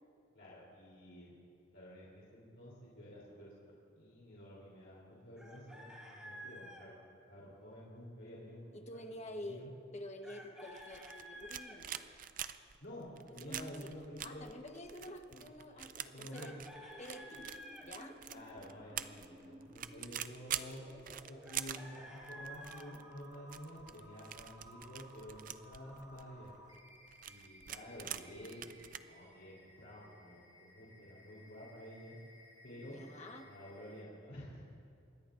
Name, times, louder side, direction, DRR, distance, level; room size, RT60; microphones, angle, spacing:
voice 1, 0.3-1.3 1.7-7.0 7.3-8.8 9.3-9.7 12.8-14.5 15.3-15.4 16.0-16.5 18.3-26.6 27.2-32.2 32.6-33.0 33.4-34.6, equal, 70° left, -7 dB, 3.5 m, -51 dB
Chicken rooster, 5.4-6.9 10.2-11.8 16.3-17.9 21.4-22.9, equal, 5° right, 3.5 m, -51 dB
voice 2, 8.7-12.1 13.4-16.6 17.0-18.2 32.7-33.5, left 1 dB, 35° left, 3 dB, 1.2 m, -49 dB
sound 1, 10.7-29.0, right 10 dB, 45° right, 0.5 m, -46 dB
sound 2, 16.1-34.1, equal, 20° right, 2.1 m, -59 dB
25.5 x 21.5 x 2.6 m, 2.4 s
head